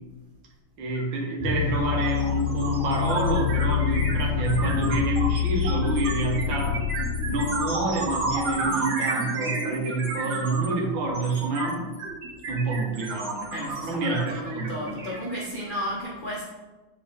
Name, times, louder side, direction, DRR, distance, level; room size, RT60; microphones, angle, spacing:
voice 1, 0.8-6.8 7.3-11.9 12.5-15.1, right 2 dB, 70° right, 0 dB, 1.9 m, -28 dB
sound 1, 1.0-1.1 1.4-15.8, right 2 dB, 55° right, 1.8 m, -32 dB
sound 2, 1.4-8.6, left 8 dB, 80° left, 1.4 m, -27 dB
voice 2, 13.5-16.4, equal, 50° left, -4 dB, 0.6 m, -33 dB
7.3 x 4.2 x 3.4 m, 1.2 s
omnidirectional pair, 2.3 m